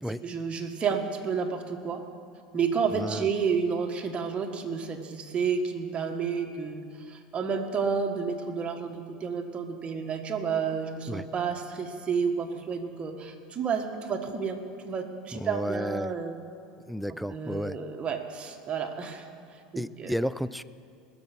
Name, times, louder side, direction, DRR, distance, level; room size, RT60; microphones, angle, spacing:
voice 1, 0.2-2.0 2.5-16.3 17.3-19.3 19.7-20.1, right 6 dB, 30° right, 3 dB, 1.6 m, -30 dB
voice 2, 2.9-3.3 11.1-11.3 15.3-16.1 16.9-17.8 19.8-20.6, equal, ahead, 15 dB, 0.4 m, -32 dB
20.5 x 7.1 x 6.1 m, 2.3 s
hypercardioid pair, 90°, 4 cm